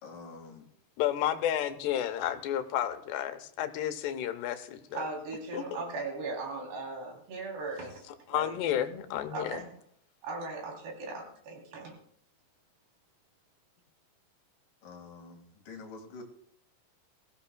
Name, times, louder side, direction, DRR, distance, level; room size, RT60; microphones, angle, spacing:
voice 1, 0.0-0.7 14.8-16.2, left 4 dB, 60° left, 2 dB, 3.4 m, -47 dB
voice 2, 1.0-5.0 5.5-5.6 8.3-9.7, left 11 dB, 85° left, 8 dB, 3.1 m, -31 dB
voice 3, 4.9-8.6 9.3-9.7 10.2-12.0, right 3 dB, 75° right, 0 dB, 5.5 m, -38 dB
20.5 x 16.0 x 2.3 m, 0.66 s
omnidirectional pair, 4.8 m